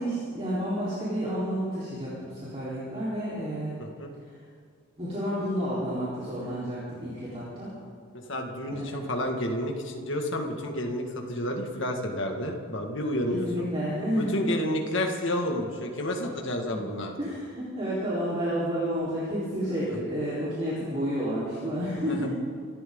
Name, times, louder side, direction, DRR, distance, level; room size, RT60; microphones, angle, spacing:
voice 1, 0.0-3.8 5.0-7.7 8.7-9.0 13.4-14.5 16.7-16.8 17.2-22.3, equal, 25° right, -10 dB, 4.2 m, -30 dB
voice 2, 8.3-13.7 14.2-17.1 22.1-22.3, left 1 dB, 55° left, 2 dB, 2.1 m, -30 dB
26.5 x 14.0 x 3.9 m, 2.1 s
head